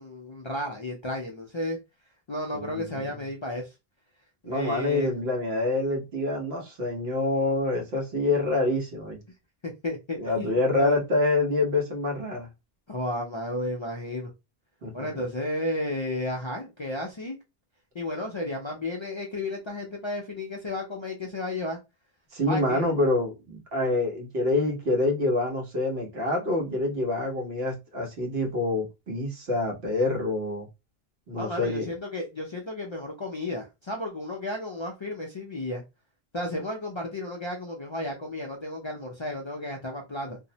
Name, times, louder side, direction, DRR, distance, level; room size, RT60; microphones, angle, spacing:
voice 1, 0.0-1.8 2.3-3.7 4.5-5.1 9.8-11.0 12.9-14.3 14.9-17.4 17.9-21.8 22.5-22.9 31.3-35.8 36.3-40.4, left 1 dB, 45° left, 0.4 m, -33 dB
voice 2, 2.5-3.2 4.4-9.2 10.2-12.5 14.8-15.2 22.3-30.7 31.3-31.9, left 2 dB, 80° right, 1.2 m, -26 dB
2.6 x 2.0 x 2.7 m
omnidirectional pair, 1.0 m